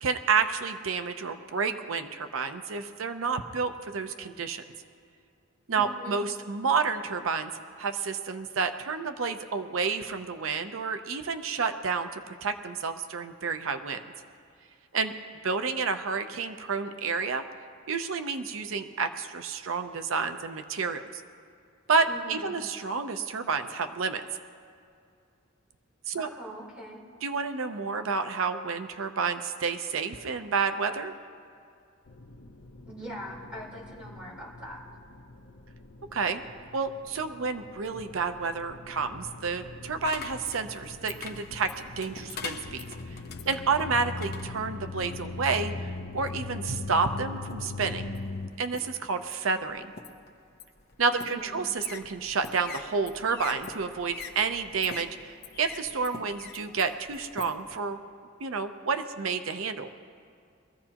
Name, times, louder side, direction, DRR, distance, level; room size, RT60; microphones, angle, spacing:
voice 1, 0.0-4.6 5.7-7.5 7.8-14.0 14.9-15.1 15.4-17.4 17.9-21.2 21.9-24.2 26.1-26.3 27.2-31.1 36.1-36.4 36.7-42.8 43.5-48.1 48.6-49.9 51.0-55.3 55.6-58.0 58.4-59.9, right 5 dB, 85° right, 8 dB, 0.6 m, -30 dB
voice 2, 5.7-6.2 22.1-22.5 26.1-27.0 32.8-34.8 51.1-51.6, equal, 5° right, -7 dB, 3.7 m, -42 dB
sound 1, 32.1-48.5, left 3 dB, 80° left, 0.7 m, -41 dB
sound 2, 40.0-45.3 46.0-46.6 47.2-47.8 48.1-57.8, left 5 dB, 55° left, 1.0 m, -44 dB
22.5 x 15.0 x 2.9 m, 2.4 s
head